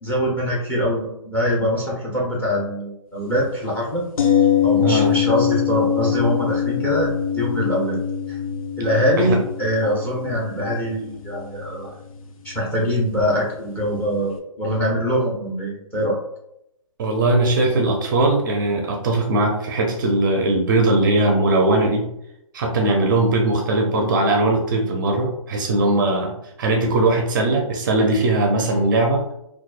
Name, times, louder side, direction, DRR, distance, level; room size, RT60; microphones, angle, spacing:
voice 1, 0.0-4.0 4.6-8.0 8.3-8.4 8.8-11.9 12.4-16.2, equal, 10° left, -3 dB, 0.6 m, -23 dB
sound 1, 4.2-14.0 14.3-14.4, left 9 dB, 75° left, 0.6 m, -24 dB
voice 2, 17.0-22.1 22.5-29.2, right 2 dB, 35° right, 2 dB, 0.5 m, -19 dB
3.9 x 2.3 x 2.3 m, 0.80 s
hypercardioid pair, 150°, 18 cm